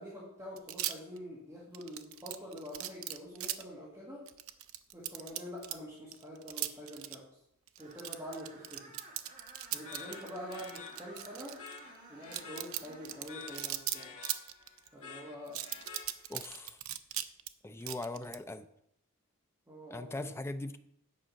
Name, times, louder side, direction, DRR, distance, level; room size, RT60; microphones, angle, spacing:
voice 1, 0.0-4.2 4.9-7.3 7.8-9.0 9.7-11.6 12.1-14.1 14.9-15.6 19.7-20.3, equal, 15° right, -7 dB, 1.7 m, -46 dB
sound 1, 0.6-1.2 1.7-3.6 4.3-5.7 6.1-7.2 7.7-11.8 12.2-14.9 15.5-17.5 17.8-18.4, right 13 dB, 70° right, 0.5 m, -38 dB
Screech, 7.8-13.3, right 2 dB, 40° right, 1.7 m, -54 dB
sound 2, 9.8-16.6, left 5 dB, 80° left, 1.5 m, -50 dB
voice 2, 16.3-16.8 17.6-18.7 19.9-20.8, left 2 dB, 10° left, 9 dB, 0.4 m, -40 dB
9.0 x 4.8 x 5.7 m, 0.75 s
head